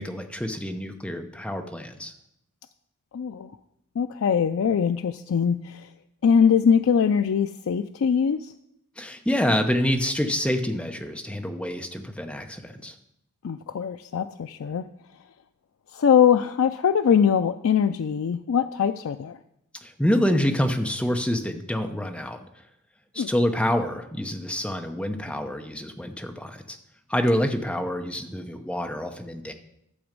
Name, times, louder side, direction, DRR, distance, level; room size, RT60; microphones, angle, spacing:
voice 1, 0.0-2.1 9.0-12.9 19.8-22.4 23.1-26.8 27.1-29.5, equal, 5° left, 5 dB, 0.8 m, -27 dB
voice 2, 3.1-3.5 4.0-5.9 6.2-8.5 13.4-14.9 15.9-19.4 23.2-23.3, left 7 dB, 70° left, 9 dB, 0.4 m, -22 dB
12.0 x 7.0 x 5.3 m, 0.79 s
head